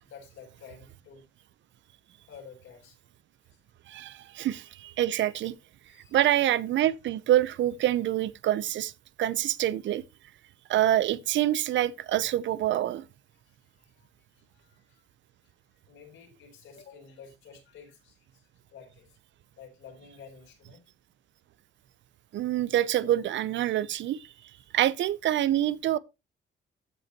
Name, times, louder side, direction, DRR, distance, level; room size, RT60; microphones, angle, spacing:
voice 1, 0.0-1.3 2.3-3.0 3.4-3.6 4.2-4.3 5.9-6.2 13.3-15.0 15.4-15.5 15.9-19.2 19.6-20.8 22.7-22.9, left 6 dB, 85° left, 3.7 m, -51 dB
voice 2, 3.9-5.6 6.1-8.9 9.2-10.0 10.7-13.1 22.3-24.3 24.7-26.0, right 12 dB, 70° right, 0.6 m, -26 dB
14.5 x 5.2 x 2.9 m
cardioid pair, 90°, 20 cm